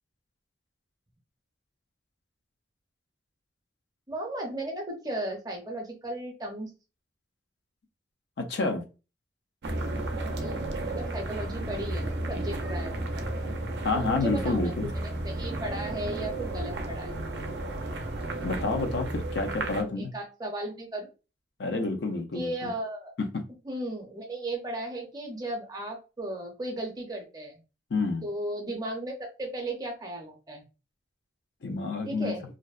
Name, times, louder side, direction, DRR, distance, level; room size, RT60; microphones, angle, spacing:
voice 1, 4.1-6.7 10.4-10.6 10.8-13.2 13.9-17.1 19.6-19.7 20.0-21.1 22.3-23.1 23.6-27.6 28.2-30.6 32.0-32.4, right 1 dB, 20° right, 1 dB, 0.6 m, -35 dB
voice 2, 8.4-8.8 13.8-14.9 18.4-20.1 21.6-22.5 23.2-23.3 27.9-28.2 31.6-32.3, left 3 dB, 70° left, 5 dB, 0.5 m, -29 dB
sound 1, 9.6-19.8, right 1 dB, 70° right, 0.4 m, -33 dB
2.6 x 2.1 x 2.3 m, 0.31 s
head